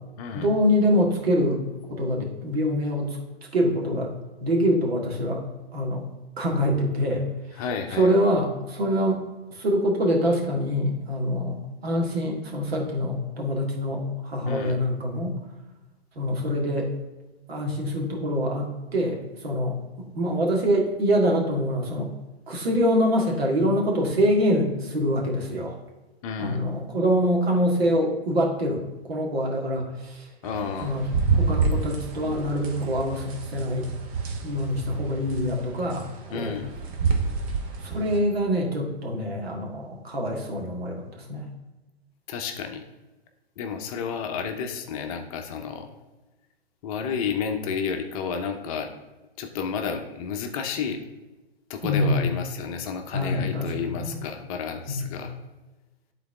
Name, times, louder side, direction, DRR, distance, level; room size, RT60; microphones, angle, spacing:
voice 1, 0.3-1.6 1.9-3.2 3.5-4.1 4.4-5.4 5.7-6.0 6.4-7.3 7.5-7.6 7.9-9.2 9.5-11.6 11.8-15.4 16.2-16.9 17.5-22.1 22.5-25.8 26.4-30.3 30.8-31.1 31.3-33.9 34.4-36.1 36.3-36.6 37.8-41.5 51.8-52.3 53.1-54.2 54.9-55.3, equal, 70° right, 0 dB, 2.0 m, -25 dB
voice 2, 7.6-8.1 14.4-14.8 26.2-26.6 30.4-30.9 36.3-36.7 42.3-42.8 43.6-45.9 46.8-48.9 49.4-51.0 51.7-55.3, left 6 dB, 35° left, 5 dB, 0.8 m, -31 dB
sound 1, 30.5-38.2, right 4 dB, 35° right, 1.0 m, -28 dB
11.5 x 4.0 x 3.6 m, 1.1 s
figure-of-eight pair, 115°, 32 cm